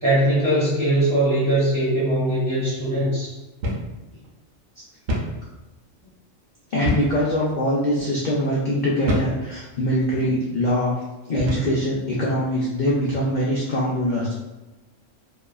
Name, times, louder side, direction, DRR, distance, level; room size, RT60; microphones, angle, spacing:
voice 1, 0.0-3.3, right 1 dB, 25° right, -10 dB, 1.3 m, -21 dB
sound 1, 3.6-3.9 4.2-4.3 5.1-5.4 6.9-7.2 7.9-8.1 9.1-9.4 10.2-10.4 11.4-11.8, equal, 90° right, 1.0 m, -26 dB
voice 2, 6.7-10.9 11.3-14.4, equal, 70° left, -5 dB, 0.4 m, -23 dB
2.8 x 2.3 x 2.3 m, 1.0 s
omnidirectional pair, 1.3 m